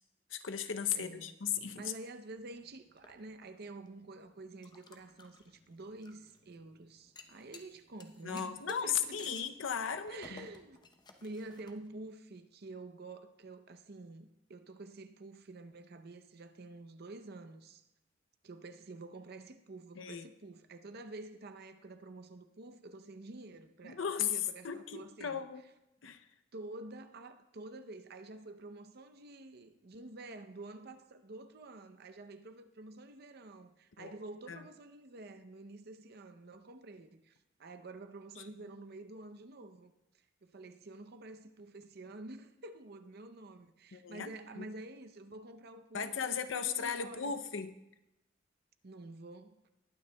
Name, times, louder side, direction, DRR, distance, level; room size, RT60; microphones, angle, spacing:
voice 1, 0.3-1.8 8.2-10.5 20.0-20.3 23.8-24.3 24.6-25.6 26.0-26.2 34.0-34.1 34.5-34.6 38.4-38.5 43.9-44.6 45.9-47.7, left 7 dB, 85° left, 0.6 m, -36 dB
voice 2, 0.9-1.3 1.8-9.3 10.1-10.8 11.2-17.9 18.4-25.4 26.5-39.9 40.4-47.4 48.8-49.6, right 2 dB, 55° right, 0.7 m, -49 dB
sound 1, 2.4-12.1, left 4 dB, 25° left, 0.7 m, -58 dB
20.0 x 9.5 x 2.2 m
head